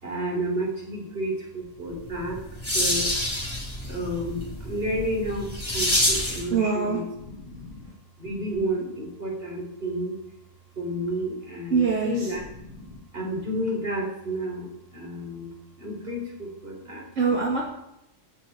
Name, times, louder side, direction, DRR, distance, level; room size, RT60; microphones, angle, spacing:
voice 1, 0.0-2.4 2.7-3.1 3.8-5.5 5.7-7.0 7.5-7.8 8.2-10.1 10.8-15.5 15.8-17.0, equal, 50° right, -1 dB, 4.4 m, -31 dB
sound 1, 2.1-6.5, left 1 dB, 20° left, 4.1 m, -27 dB
voice 2, 6.5-7.0 11.7-12.3 17.1-17.6, right 5 dB, 80° right, -2 dB, 2.5 m, -23 dB
14.0 x 6.7 x 9.7 m, 0.83 s
omnidirectional pair, 1.3 m